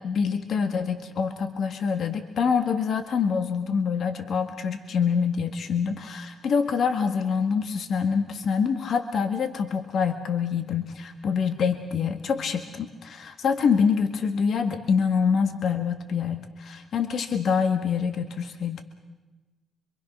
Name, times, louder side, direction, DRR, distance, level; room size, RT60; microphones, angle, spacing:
voice 1, 0.0-18.8, left 6 dB, 60° left, 6 dB, 1.8 m, -25 dB
26.5 x 23.5 x 6.1 m, 1.2 s
cardioid pair, 90°, 0 cm